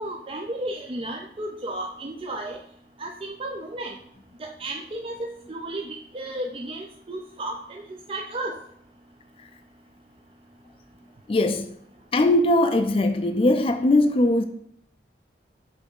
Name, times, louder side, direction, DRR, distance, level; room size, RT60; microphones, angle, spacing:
voice 1, 0.0-2.6 3.0-3.9 4.4-7.8 8.1-8.6, right 1 dB, 30° right, 0.4 m, -33 dB
voice 2, 11.3-11.7 12.1-14.4, left 1 dB, 30° left, 0.4 m, -20 dB
6.2 x 3.4 x 5.3 m
head